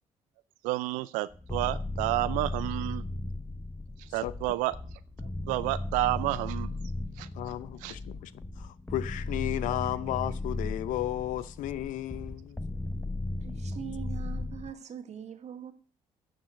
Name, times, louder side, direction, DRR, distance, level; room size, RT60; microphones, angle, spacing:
voice 1, 0.6-3.0 4.0-4.8 5.5-6.8 7.2-7.3 7.8-8.0, right 17 dB, 85° right, 0.5 m, -30 dB
sound 1, 1.3-14.7, left 2 dB, 15° left, 0.9 m, -36 dB
voice 2, 7.3-8.3 8.6-12.6, left 13 dB, 75° left, 0.7 m, -34 dB
voice 3, 13.4-15.7, right 8 dB, 55° right, 1.8 m, -42 dB
10.0 x 6.1 x 8.1 m
supercardioid pair, 60°, 13 cm